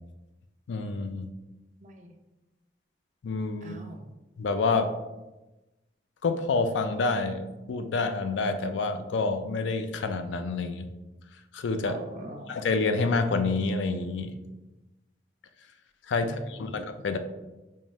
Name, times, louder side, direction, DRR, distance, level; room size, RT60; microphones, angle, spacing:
voice 1, 0.7-1.3 3.2-3.8 4.4-5.0 6.2-10.9 11.5-12.0 12.5-14.3 16.1-17.2, left 3 dB, 90° left, 9 dB, 0.4 m, -28 dB
voice 2, 1.8-2.2 3.6-4.1 11.8-12.5 16.2-16.8, right 1 dB, 40° right, 3 dB, 0.5 m, -42 dB
5.4 x 2.1 x 3.0 m, 1.1 s
head